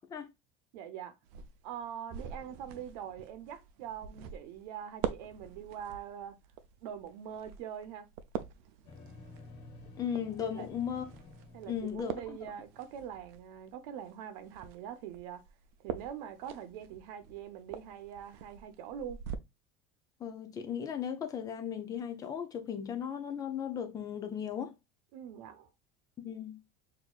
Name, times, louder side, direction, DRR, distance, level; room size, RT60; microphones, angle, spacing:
voice 1, 0.7-1.1 1.6-6.4 6.8-8.1 10.4-10.7 11.5-15.4 15.8-19.2 25.1-25.7, right 9 dB, 90° right, 0.8 m, -43 dB
sound 1, 1.2-19.4, right 9 dB, 60° right, 0.5 m, -45 dB
sound 2, 8.8-12.8, left 2 dB, 70° left, 1.3 m, -52 dB
voice 2, 10.0-11.1 11.7-12.4 20.2-24.7 26.2-26.6, left 8 dB, 15° left, 0.5 m, -36 dB
6.2 x 2.7 x 2.3 m
cardioid pair, 175°, 21 cm